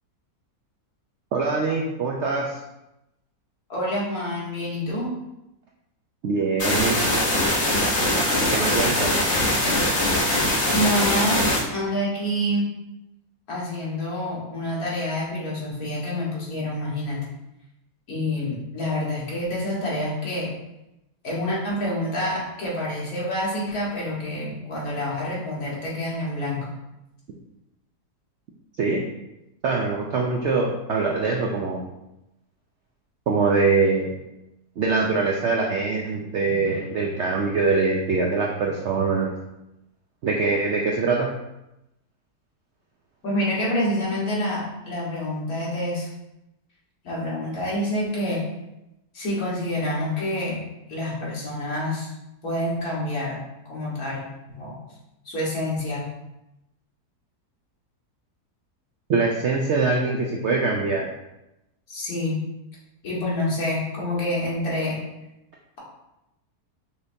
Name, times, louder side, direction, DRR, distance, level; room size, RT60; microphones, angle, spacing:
voice 1, 1.3-2.5 6.2-7.0 8.5-9.1 28.8-29.0 29.6-31.8 33.3-34.1 34.8-39.3 40.2-41.3 59.1-61.1, right 4 dB, 70° right, -1 dB, 0.6 m, -23 dB
voice 2, 3.7-5.1 10.7-11.4 11.7-12.7 13.5-17.2 18.1-20.5 21.2-26.7 43.2-46.1 47.0-48.4 49.1-52.1 52.4-53.4 53.7-54.7 55.3-56.1 61.9-62.4 63.0-65.0, left 1 dB, 65° left, -6 dB, 2.0 m, -27 dB
sound 1, 6.6-11.6, left 1 dB, 45° left, 1.4 m, -22 dB
5.7 x 3.4 x 2.7 m, 0.91 s
omnidirectional pair, 1.7 m